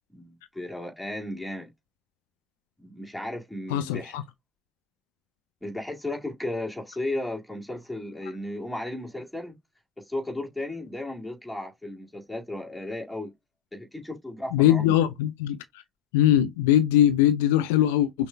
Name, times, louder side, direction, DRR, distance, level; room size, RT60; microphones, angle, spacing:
voice 1, 0.1-1.7 2.8-4.2 5.6-9.5 10.0-13.3 13.7-15.0, left 1 dB, 5° left, 2.1 m, -35 dB
voice 2, 3.7-4.2 14.5-15.6 16.1-18.3, left 12 dB, 75° left, 0.3 m, -21 dB
5.9 x 2.7 x 2.2 m
figure-of-eight pair, 40°, 0 cm